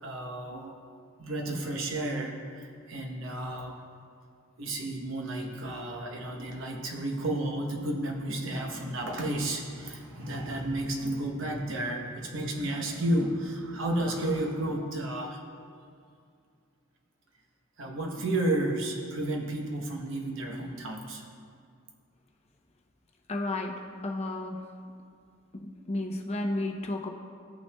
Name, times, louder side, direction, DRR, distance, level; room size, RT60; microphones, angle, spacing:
voice 1, 0.0-0.7 1.2-3.8 4.6-15.4 17.8-21.2, right 1 dB, 65° right, 2 dB, 0.9 m, -32 dB
voice 2, 23.3-23.8 24.0-24.6 25.5-27.1, left 2 dB, 30° left, 2 dB, 0.6 m, -32 dB
15.5 x 5.7 x 2.3 m, 2.3 s
head